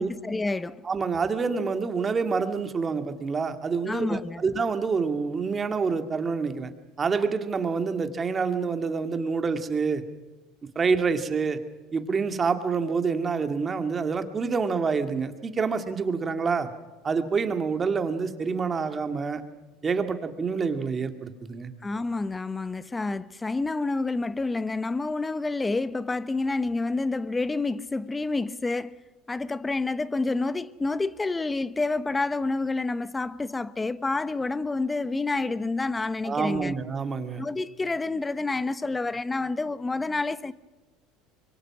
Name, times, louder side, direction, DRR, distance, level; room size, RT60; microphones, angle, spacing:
voice 1, 0.0-0.8 3.9-4.4 21.8-29.0 29.3-36.7 37.4-40.5, left 3 dB, 15° left, 0.9 m, -28 dB
voice 2, 0.8-6.7 7.0-10.0 10.8-11.6 11.9-16.7 17.0-19.4 19.8-21.7 36.2-37.4, right 5 dB, 25° right, 2.1 m, -27 dB
24.5 x 23.0 x 6.1 m
supercardioid pair, 105°, 0 cm